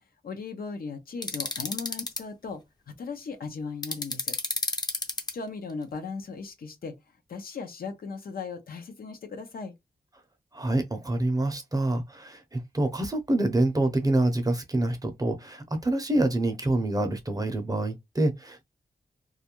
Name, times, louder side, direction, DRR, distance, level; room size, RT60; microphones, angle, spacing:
voice 1, 0.2-2.6 2.9-4.4 5.3-6.9 7.3-9.7, left 4 dB, 70° left, 0.6 m, -37 dB
sound 1, 1.2-2.2 3.8-5.3, left 2 dB, 25° left, 0.6 m, -30 dB
voice 2, 10.5-18.6, right 2 dB, 25° right, 0.6 m, -26 dB
2.4 x 2.1 x 2.9 m
wide cardioid pair, 75°, 16 cm